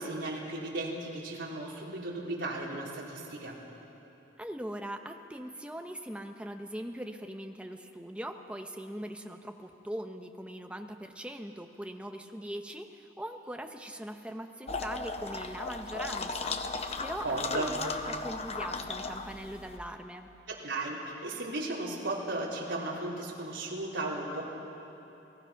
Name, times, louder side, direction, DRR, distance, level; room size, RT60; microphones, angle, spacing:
voice 1, 0.0-3.6 17.2-17.7 20.5-24.4, right 2 dB, 65° right, -4 dB, 4.0 m, -35 dB
voice 2, 4.4-20.3, right 1 dB, 5° right, 5 dB, 0.9 m, -41 dB
sound 1, 14.7-19.8, left 3 dB, 30° left, 0.8 m, -36 dB
29.5 x 18.0 x 5.9 m, 2.9 s
head